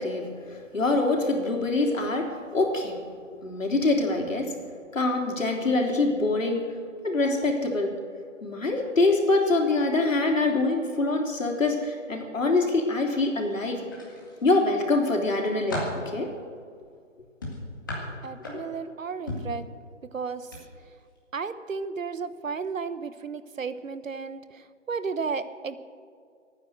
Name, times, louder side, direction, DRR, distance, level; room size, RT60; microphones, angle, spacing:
voice 1, 0.0-3.0 3.4-4.6 4.9-6.7 7.0-7.9 8.4-13.8 14.4-16.3, left 2 dB, 80° left, 1 dB, 3.7 m, -25 dB
sound 1, 13.9-14.7 15.2-16.0 17.4-18.8 19.3-19.6 20.4-20.6 21.0-21.2, left 1 dB, 15° left, 1.9 m, -35 dB
voice 2, 18.2-19.6 20.1-20.5 21.3-25.8, right 5 dB, 90° right, 13 dB, 1.2 m, -33 dB
22.5 x 9.5 x 6.6 m, 2.2 s
hypercardioid pair, 180°, 38 cm